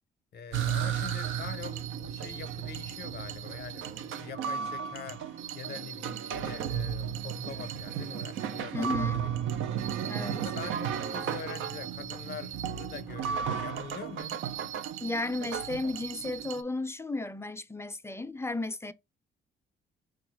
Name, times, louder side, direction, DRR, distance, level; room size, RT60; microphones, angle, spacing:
voice 1, 0.3-9.7 10.2-14.4, left 7 dB, 55° left, 0.6 m, -44 dB
sound 1, 0.5-16.6, right 8 dB, 80° right, 0.5 m, -34 dB
voice 2, 8.7-9.2 10.1-10.4 15.0-18.9, left 2 dB, 15° left, 0.4 m, -34 dB
4.5 x 2.3 x 4.3 m
cardioid pair, 90°, 20 cm